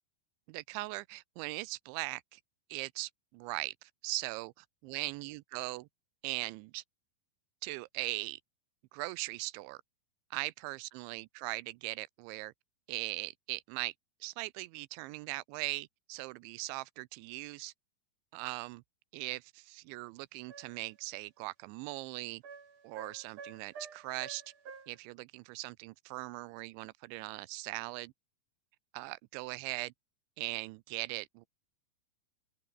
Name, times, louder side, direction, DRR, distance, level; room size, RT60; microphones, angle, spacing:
voice 1, 0.5-2.4 2.7-5.9 6.2-6.8 7.6-8.4 8.9-9.8 10.3-12.5 12.9-13.9 14.2-17.7 18.3-18.8 19.1-22.4 22.8-24.4 24.9-28.1 28.9-29.9 30.4-31.5, right 22 dB, 90° right, 3.0 m, -40 dB
sound 1, 20.5-20.9 22.4-25.0, right 5 dB, 45° right, 5.5 m, -50 dB
open air
omnidirectional pair, 5.2 m